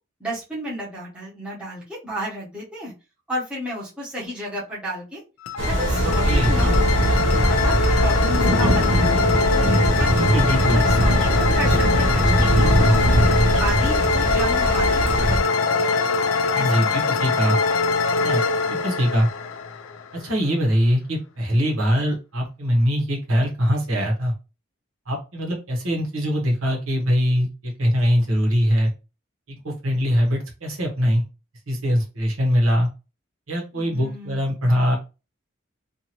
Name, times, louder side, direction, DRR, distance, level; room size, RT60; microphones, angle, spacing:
voice 1, 0.2-2.9 3.3-5.2 5.7-6.8 7.5-10.1 10.7-13.0 13.6-15.5 16.5-17.5 18.7-18.9 33.7-34.4 34.7-35.0, right 1 dB, 5° right, -7 dB, 1.0 m, -32 dB
sound 1, 5.4-20.2, left 5 dB, 80° left, 0.4 m, -23 dB
sound 2, 5.6-15.4, right 1 dB, 60° right, 0.8 m, -20 dB
voice 2, 6.0-6.5 10.1-10.8 16.5-17.6 18.2-19.3 20.1-24.3 25.1-28.9 29.5-31.2 31.7-32.9 33.5-35.0, equal, 90° right, 0 dB, 1.1 m, -22 dB
2.7 x 2.5 x 2.9 m, 0.30 s
head